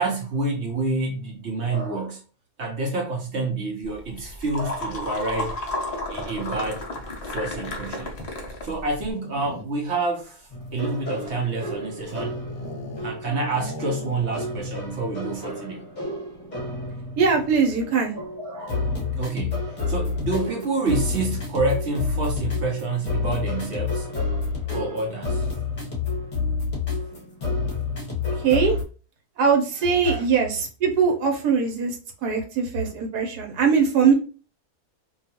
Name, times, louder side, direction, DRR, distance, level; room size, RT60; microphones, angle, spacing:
voice 1, 0.0-2.2 2.6-5.5 6.1-6.9 7.2-8.1 8.6-12.4 13.0-15.8 18.1-24.1 24.7-25.5 30.0-30.2, right 3 dB, 60° right, 0.7 m, -28 dB
sound 1, 3.8-9.1, left 2 dB, 80° left, 0.3 m, -32 dB
sound 2, 9.0-10.0 10.6-13.2 13.5-14.6 14.8-14.9 15.2-15.6, left 3 dB, 65° left, 0.7 m, -40 dB
sound 3, 10.5-28.8, left 3 dB, 35° left, 0.9 m, -29 dB
voice 2, 17.2-18.2 28.4-28.8 29.4-34.1, right 5 dB, 85° right, 1.3 m, -21 dB
2.7 x 2.3 x 2.7 m
omnidirectional pair, 1.6 m